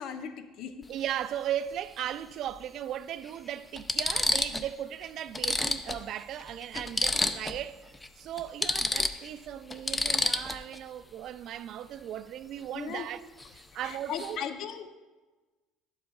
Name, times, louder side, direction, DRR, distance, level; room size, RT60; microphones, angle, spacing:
voice 1, 0.0-0.8 12.7-13.1 13.8-14.9, left 8 dB, 60° left, 0.6 m, -37 dB
sound 1, 0.8-1.0 2.5-2.6 3.3-3.4 3.8-4.7 5.0-5.1 5.3-7.6 7.9-8.1 8.4-10.8 13.4-13.6 13.9-14.4, left 2 dB, 20° left, 0.5 m, -30 dB
voice 2, 0.9-7.9 8.2-13.2 13.5-14.4, right 11 dB, 60° right, 0.3 m, -37 dB
11.5 x 7.6 x 2.3 m
supercardioid pair, 85°, 0 cm